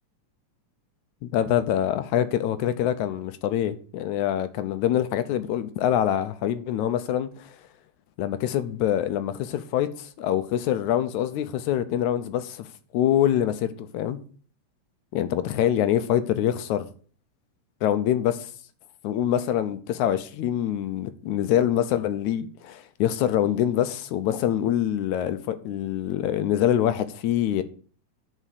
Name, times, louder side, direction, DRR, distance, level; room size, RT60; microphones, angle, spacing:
voice 1, 1.2-7.6 8.2-14.2 15.1-16.9 17.8-18.5 19.0-27.6, left 11 dB, 80° left, 1.9 m, -25 dB
9.8 x 5.0 x 6.5 m
omnidirectional pair, 3.6 m